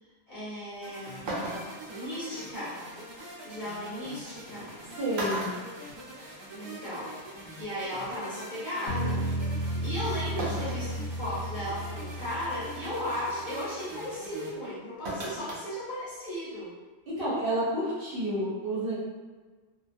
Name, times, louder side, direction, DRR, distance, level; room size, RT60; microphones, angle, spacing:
voice 1, 0.3-1.3 1.9-2.8 3.4-4.7 6.5-7.1 7.6-16.8, left 1 dB, 45° left, -10 dB, 0.8 m, -36 dB
sound 1, 0.7-0.8 1.3-1.9 3.5-3.6 4.6-4.8 5.1-6.5 6.9-7.0 8.2-8.3 10.4-10.9 11.4-11.5 12.1-12.4 15.0-15.7 16.0-16.1, right 1 dB, 90° right, 0.9 m, -35 dB
sound 2, 0.8-14.5, right 1 dB, 30° right, 0.6 m, -44 dB
voice 2, 5.0-5.5 17.1-19.0, right 1 dB, 55° right, -8 dB, 0.8 m, -29 dB
Bass guitar, 8.9-13.2, right 1 dB, 85° left, 1.1 m, -33 dB
2.3 x 2.1 x 2.5 m, 1.4 s
omnidirectional pair, 1.2 m